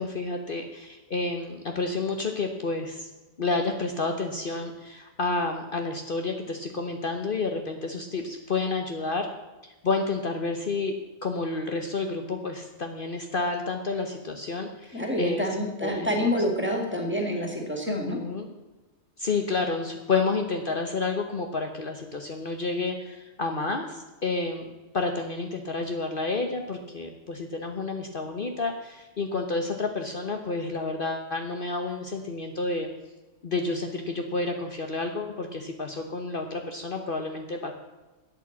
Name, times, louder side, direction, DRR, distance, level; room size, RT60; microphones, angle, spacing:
voice 1, 0.0-3.1 3.4-9.3 9.6-10.9 11.2-15.4 15.8-16.3 17.9-18.5 19.2-24.7 24.9-32.9 33.4-37.7, left 3 dB, 50° left, 4 dB, 1.2 m, -30 dB
voice 2, 14.9-18.2, equal, 10° right, 2 dB, 2.6 m, -27 dB
12.5 x 8.7 x 7.4 m, 1.1 s
omnidirectional pair, 1.2 m